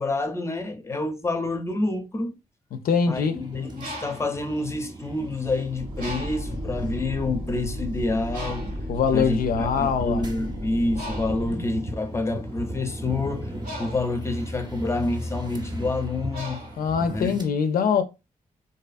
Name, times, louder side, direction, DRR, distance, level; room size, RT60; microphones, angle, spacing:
voice 1, 0.0-2.3 3.1-8.7 9.1-13.5 13.8-16.7 17.1-17.4, left 2 dB, 20° left, 0.5 m, -28 dB
voice 2, 2.7-3.4 8.9-10.3 16.8-18.0, left 6 dB, 75° left, 0.4 m, -23 dB
sound 1, 3.2-17.5, equal, 30° right, 0.6 m, -37 dB
Bird, 3.6-5.4 6.0-6.7 7.3-7.5 7.7-17.5, equal, 85° right, 1.0 m, -40 dB
sound 2, 5.7-11.5, equal, 65° right, 0.6 m, -34 dB
2.6 x 2.4 x 2.4 m
cardioid pair, 75°, 15 cm